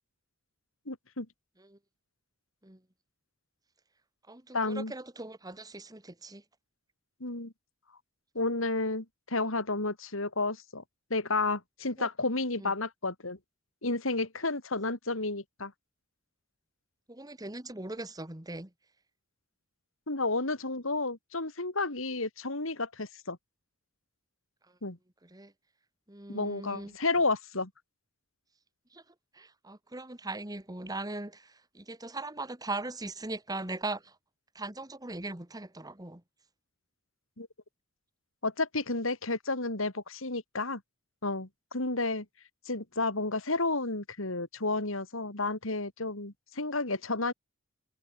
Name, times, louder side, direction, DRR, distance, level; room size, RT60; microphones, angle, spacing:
voice 1, 0.9-1.3 4.5-4.9 7.2-7.5 8.4-10.8 11.1-13.4 13.8-15.7 20.1-23.4 24.8-25.0 26.3-27.7 37.4-37.5 38.4-40.8 41.2-42.3 42.7-47.3, left 3 dB, 75° left, 3.5 m, -31 dB
voice 2, 4.3-6.4 12.0-12.1 12.6-12.7 17.1-18.7 25.2-25.5 26.1-26.9 28.9-29.0 29.3-34.2 34.6-36.2, right 2 dB, 20° right, 1.8 m, -40 dB
head